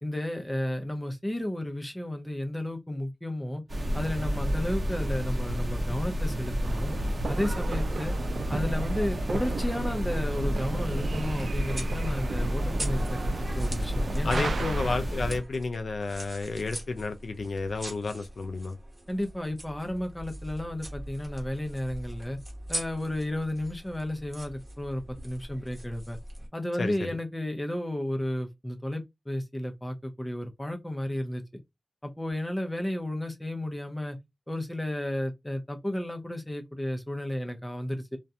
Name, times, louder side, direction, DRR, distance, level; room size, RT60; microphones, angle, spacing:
voice 1, 0.0-3.6 3.9-6.9 7.3-8.1 8.5-13.2 13.6-14.5 19.1-22.4 22.7-26.2 26.5-31.6 32.0-34.2 34.5-38.2, left 1 dB, 10° left, 0.6 m, -33 dB
sound 1, 3.7-15.4, equal, 50° right, 0.8 m, -30 dB
sound 2, 6.6-15.0, right 4 dB, 80° right, 0.3 m, -37 dB
sound 3, 10.9-26.5, right 1 dB, 25° right, 1.0 m, -42 dB
voice 2, 14.2-18.8 26.8-27.1, left 3 dB, 75° left, 0.3 m, -31 dB
2.3 x 2.1 x 2.7 m
wide cardioid pair, 75°, 0 cm